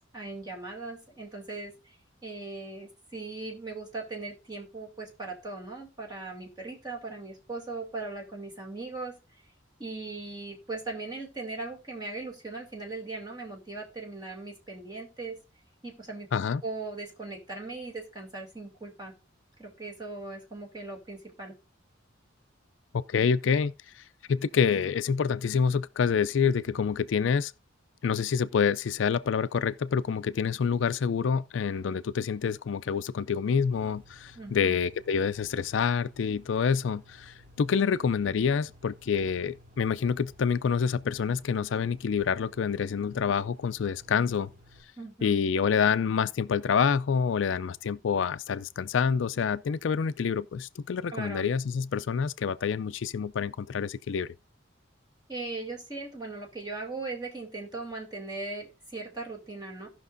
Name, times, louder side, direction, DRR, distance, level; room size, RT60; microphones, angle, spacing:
voice 1, 0.1-9.1 9.8-15.4 15.8-16.3 16.6-19.1 19.6-21.5 34.3-34.8 45.0-45.4 51.1-51.5 55.3-59.9, right 3 dB, 20° right, 2.5 m, -39 dB
voice 2, 16.3-16.6 23.1-24.0 24.3-27.5 28.0-44.5 45.2-54.3, left 6 dB, 75° left, 0.4 m, -27 dB
sound 1, 33.7-44.8, left 1 dB, 45° right, 2.3 m, -56 dB
17.0 x 5.9 x 2.6 m
head